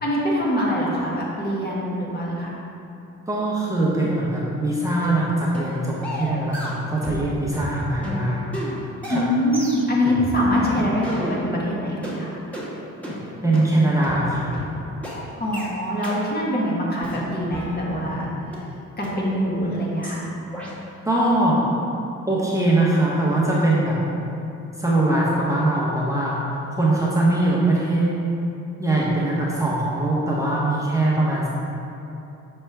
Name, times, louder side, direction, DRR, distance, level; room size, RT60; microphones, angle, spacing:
voice 1, 0.0-2.5 9.1-12.3 15.4-18.3 19.0-20.3, equal, 30° left, -4 dB, 1.4 m, -24 dB
voice 2, 3.3-8.4 9.1-9.2 13.4-14.5 21.0-21.6 22.3-24.0 24.8-28.1 28.8-31.5, right 2 dB, 10° right, -6 dB, 0.9 m, -21 dB
sound 1, 5.0-5.2 5.5-5.7 6.0-7.3 7.5-11.7 12.0-12.2 12.5-12.7 13.0-13.2 13.5-13.7 14.0-14.2 14.5-14.7 15.0-15.2 15.5-15.7 16.0-16.2 16.5-16.7 17.0-18.2 18.5-18.6 19.0-19.1 19.5-19.7 20.0-20.2 20.5-20.7, equal, 5° left, 1.5 m, -31 dB
6.5 x 4.4 x 3.4 m, 2.9 s
cardioid pair, 90°, 30 cm